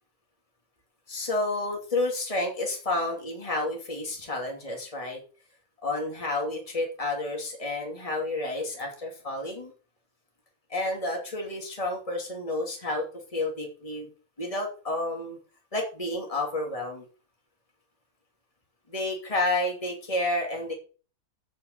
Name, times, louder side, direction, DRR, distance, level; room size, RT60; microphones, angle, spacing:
voice 1, 1.1-5.2 5.8-9.7 10.7-13.0 13.3-14.1 14.4-15.4 15.7-17.0 18.9-20.7, left 2 dB, 20° left, 0 dB, 2.8 m, -30 dB
8.6 x 7.2 x 8.2 m, 0.38 s
omnidirectional pair, 1.6 m